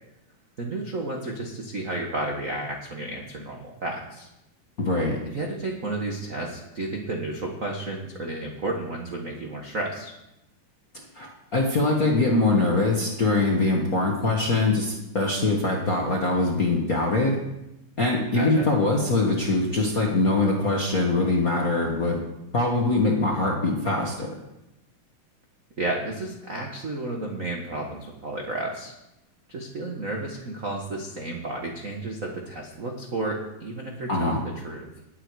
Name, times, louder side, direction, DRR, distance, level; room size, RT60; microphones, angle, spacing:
voice 1, 0.6-4.3 5.3-10.1 18.3-18.7 25.8-28.9 29.5-34.9, right 2 dB, 65° right, 1 dB, 0.8 m, -32 dB
voice 2, 4.8-5.2 11.1-17.4 18.0-22.2 22.5-24.3 34.1-34.4, left 2 dB, 45° left, -1 dB, 1.1 m, -23 dB
19.0 x 8.3 x 4.7 m, 0.92 s
omnidirectional pair, 3.7 m